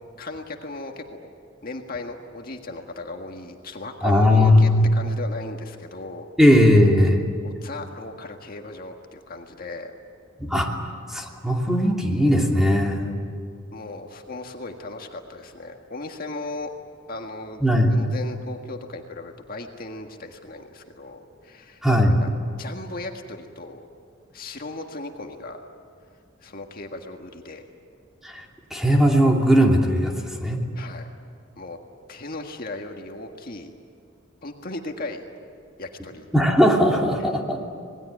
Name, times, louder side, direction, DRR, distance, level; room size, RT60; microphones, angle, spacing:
voice 1, 0.2-1.3 1.6-6.3 7.4-9.9 13.7-16.7 17.1-17.6 17.9-21.8 22.2-22.3 22.6-23.9 24.3-25.6 26.4-27.7 30.8-31.1 31.6-31.8 32.1-33.7 34.4-35.2 35.8-36.3, left 2 dB, 50° left, 3 dB, 1.7 m, -36 dB
voice 2, 4.0-4.9 6.4-7.2 10.4-10.7 11.1-13.1 17.6-17.9 21.8-22.2 28.2-28.4 28.7-30.6 36.3-37.6, equal, ahead, 0 dB, 2.9 m, -18 dB
27.0 x 20.0 x 9.6 m, 2.3 s
head